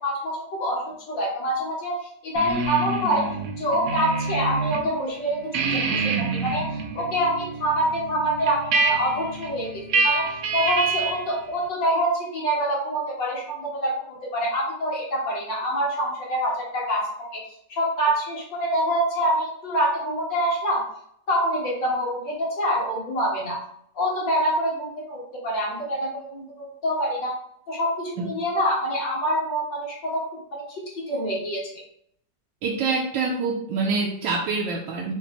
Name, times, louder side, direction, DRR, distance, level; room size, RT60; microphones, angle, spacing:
voice 1, 0.0-17.4 17.7-20.8 21.3-23.6 24.0-27.3 27.7-31.6, equal, 80° left, -4 dB, 2.4 m, -26 dB
sound 1, 2.4-4.8 5.2-11.3, right 4 dB, 60° right, 0.9 m, -27 dB
voice 2, 32.6-35.1, right 4 dB, 85° right, -2 dB, 1.4 m, -26 dB
5.8 x 2.1 x 4.2 m, 0.69 s
omnidirectional pair, 2.0 m